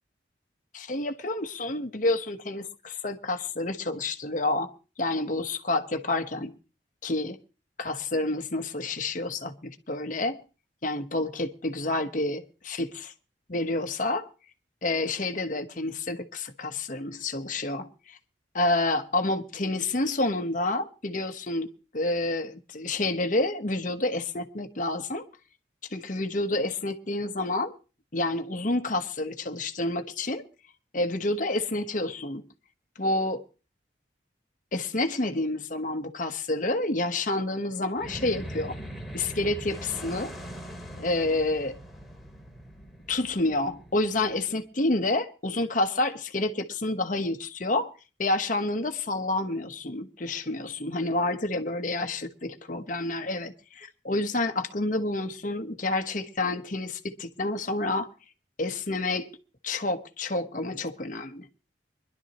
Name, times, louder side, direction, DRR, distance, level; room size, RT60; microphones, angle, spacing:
voice 1, 0.7-4.7 5.0-6.5 7.0-7.4 7.8-10.4 10.8-13.1 13.5-14.3 14.8-18.2 18.5-21.7 21.9-25.2 25.9-27.7 28.1-30.4 30.9-32.4 33.0-33.4 34.7-38.8 39.1-40.3 41.0-41.8 43.1-47.9 48.2-58.1 58.6-59.3 59.6-61.5, left 2 dB, 45° left, 1.1 m, -29 dB
sound 1, 37.9-44.6, equal, ahead, 2.2 m, -41 dB
24.0 x 11.5 x 3.0 m
head